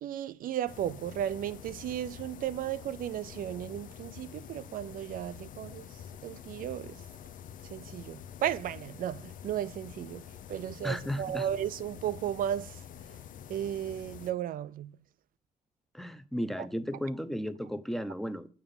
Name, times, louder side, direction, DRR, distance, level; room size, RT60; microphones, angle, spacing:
voice 1, 0.0-7.0 7.6-10.2 10.5-12.8 13.5-15.0 16.6-16.7, right 11 dB, 80° right, 0.4 m, -35 dB
sound 1, 0.7-14.3, left 9 dB, 70° left, 0.6 m, -47 dB
voice 2, 10.8-11.5 15.9-18.5, equal, ahead, 0.7 m, -34 dB
7.2 x 6.9 x 5.4 m
cardioid pair, 125°, 14 cm